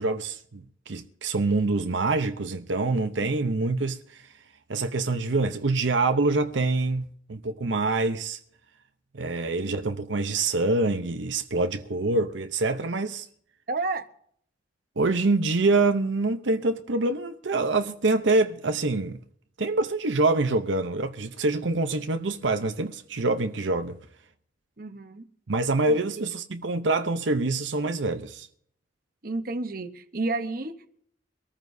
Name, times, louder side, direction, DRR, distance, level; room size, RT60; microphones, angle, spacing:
voice 1, 0.0-4.3 4.7-8.4 9.1-13.3 15.0-19.2 19.6-24.0 25.5-28.5, right 3 dB, 80° right, 0.8 m, -25 dB
voice 2, 13.7-14.0 24.8-25.2 25.9-26.3 29.2-30.9, right 3 dB, 50° right, 1.0 m, -31 dB
23.5 x 14.0 x 2.7 m
head